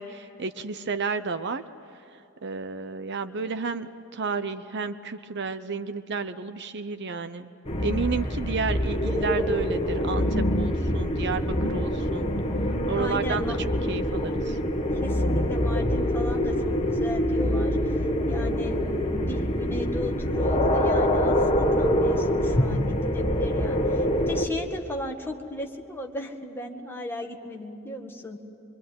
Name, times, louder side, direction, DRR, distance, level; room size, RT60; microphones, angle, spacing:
voice 1, 0.0-1.6 2.4-7.5 7.8-12.3 12.9-13.4 13.9-14.6, right 4 dB, 50° right, 11 dB, 0.8 m, -31 dB
sound 1, 7.6-24.5, equal, 30° left, 1.8 m, -25 dB
voice 2, 12.6-13.6 15.0-18.0 18.3-28.4, left 1 dB, 10° left, 1 dB, 1.9 m, -36 dB
25.0 x 24.5 x 9.4 m, 2.8 s
head